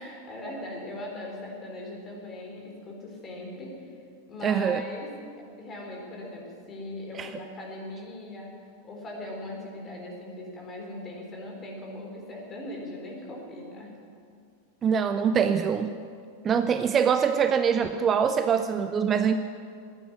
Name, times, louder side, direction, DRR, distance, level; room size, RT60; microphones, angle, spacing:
voice 1, 0.0-4.0 4.3-5.1 5.6-8.6 8.8-13.9, left 1 dB, 25° left, -1 dB, 4.0 m, -39 dB
voice 2, 4.4-4.8 7.2-7.3 14.8-16.0 16.4-19.4, right 7 dB, 25° right, 10 dB, 0.5 m, -24 dB
12.0 x 9.3 x 9.6 m, 2.3 s
figure-of-eight pair, 90°, 0 cm